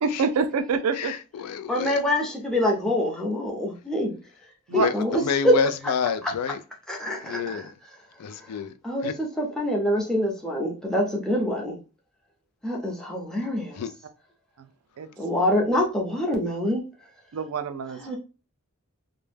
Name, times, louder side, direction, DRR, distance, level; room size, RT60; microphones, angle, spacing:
voice 1, 0.0-1.2 4.7-4.9 15.0-15.1 17.3-18.2, right 5 dB, 75° right, 0.4 m, -26 dB
voice 2, 1.0-2.0 4.7-4.9 5.2-6.6 7.2-7.7 8.2-8.7 9.0-9.1 13.8-13.9, left 7 dB, 90° left, 0.3 m, -28 dB
voice 3, 1.7-4.2 4.7-5.6 6.2-6.3 6.9-7.6 8.8-11.8 12.6-13.8 15.2-16.8 18.0-18.2, equal, 5° left, 0.6 m, -25 dB
2.2 x 2.1 x 3.2 m
head